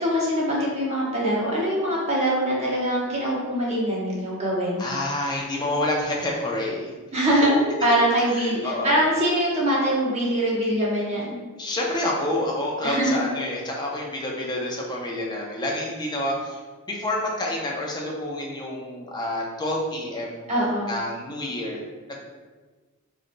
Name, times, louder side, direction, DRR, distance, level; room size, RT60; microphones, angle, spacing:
voice 1, 0.0-4.8 7.1-7.5 7.8-11.3 12.8-13.2 20.5-21.0, equal, 30° right, -5 dB, 1.0 m, -23 dB
voice 2, 4.8-6.9 8.3-9.0 11.6-16.6 16.9-20.4 20.9-22.2, left 1 dB, 20° left, -2 dB, 0.6 m, -28 dB
5.0 x 3.0 x 2.2 m, 1.3 s
head